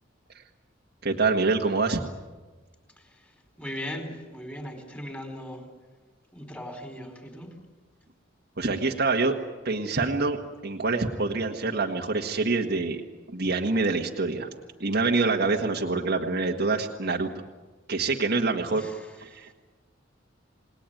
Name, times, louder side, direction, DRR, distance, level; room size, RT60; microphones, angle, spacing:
voice 1, 1.0-2.0 8.6-9.3 9.6-10.4 10.6-13.0 13.3-14.5 14.8-17.3 17.9-18.9 19.2-19.5, right 3 dB, 55° right, 1 dB, 1.7 m, -26 dB
voice 2, 3.6-5.6 6.3-7.5 18.7-19.1, equal, 10° left, 5 dB, 4.5 m, -38 dB
28.5 x 20.0 x 9.3 m, 1.3 s
head